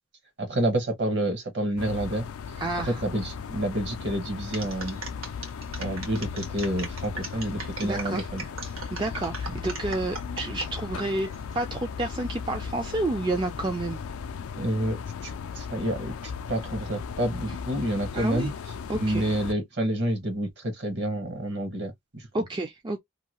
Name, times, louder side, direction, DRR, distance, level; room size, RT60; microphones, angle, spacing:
voice 1, 0.4-2.3 3.0-5.0 5.8-8.4 14.6-18.5 18.9-22.3, right 1 dB, 55° right, 1.0 m, -29 dB
sound 1, 1.8-19.5, left 6 dB, 80° left, 0.4 m, -37 dB
voice 2, 2.6-3.0 7.8-8.2 8.9-11.3 11.5-14.0 18.1-18.5 18.9-19.3 22.3-23.0, right 2 dB, 20° right, 0.3 m, -30 dB
sound 2, 4.5-10.7 11.2-11.6, right 3 dB, 75° right, 1.2 m, -38 dB
2.7 x 2.3 x 2.9 m
head